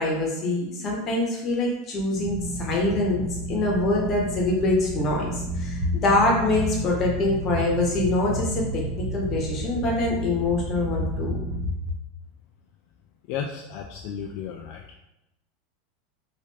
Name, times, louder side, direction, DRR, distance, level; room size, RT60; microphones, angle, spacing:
voice 1, 0.0-11.4, left 2 dB, 35° left, -1 dB, 1.0 m, -24 dB
sound 1, 2.1-11.7, right 1 dB, 20° right, 1.1 m, -32 dB
voice 2, 13.3-14.8, left 7 dB, 55° left, 1 dB, 0.3 m, -33 dB
3.1 x 2.6 x 3.2 m, 0.90 s
supercardioid pair, 135°, 0 cm